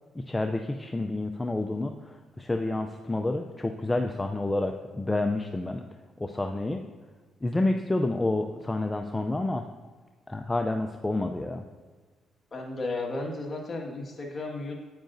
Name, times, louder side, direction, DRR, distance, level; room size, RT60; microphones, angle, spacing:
voice 1, 0.1-5.8 6.2-6.8 7.4-9.7 10.3-11.6, left 2 dB, 15° left, 5 dB, 0.5 m, -29 dB
voice 2, 12.5-14.8, left 2 dB, 35° left, -1 dB, 1.7 m, -34 dB
9.1 x 8.8 x 2.6 m, 1.4 s
cardioid pair, 85°, 0 cm